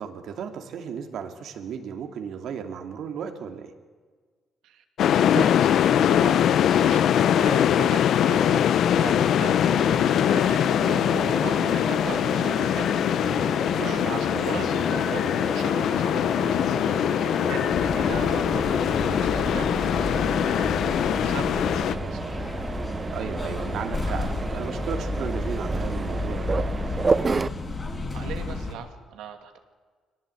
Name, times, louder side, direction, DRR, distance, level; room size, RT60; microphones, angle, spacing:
voice 1, 0.0-3.7 13.8-14.0 23.1-26.8, right 7 dB, 75° right, 5 dB, 2.7 m, -35 dB
sound 1, 5.0-22.0, left 9 dB, 70° left, 0.8 m, -22 dB
voice 2, 5.1-12.9 13.2-13.4 13.8-22.3 28.1-29.6, right 8 dB, 90° right, 5 dB, 2.6 m, -39 dB
Mechanisms, 9.0-27.5, right 4 dB, 30° right, 0.7 m, -33 dB
sound 2, 17.7-28.7, left 2 dB, 30° left, 5.1 m, -32 dB
23.5 x 18.5 x 8.5 m, 1.5 s
cardioid pair, 90°, 0 cm